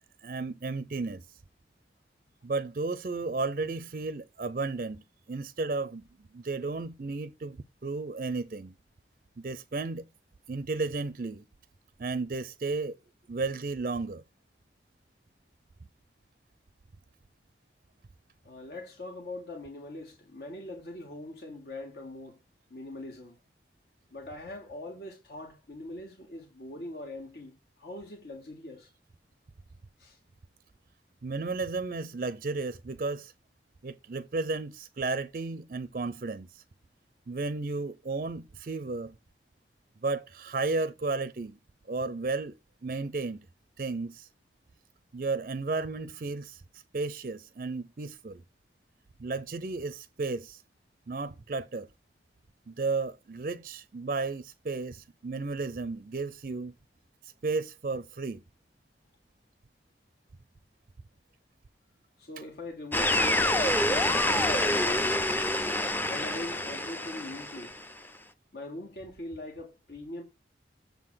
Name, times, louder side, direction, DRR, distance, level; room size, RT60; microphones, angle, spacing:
voice 1, 0.2-1.4 2.4-5.0 5.3-8.8 9.4-10.1 10.5-11.4 12.0-13.0 13.3-14.2 31.2-33.3 33.8-36.6 37.3-39.1 40.0-41.6 41.9-42.5 42.8-43.5 43.8-44.3 45.1-48.4 49.2-50.6 51.1-51.9 52.7-56.7 57.2-58.4, right 3 dB, 50° right, 0.4 m, -33 dB
voice 2, 18.4-22.4 22.7-23.4 24.1-28.9 30.0-30.2 62.2-65.3 66.1-67.8 68.5-70.2, left 2 dB, 65° left, 1.8 m, -42 dB
sound 1, 62.9-67.9, left 1 dB, 10° left, 0.5 m, -27 dB
7.0 x 3.8 x 6.1 m
head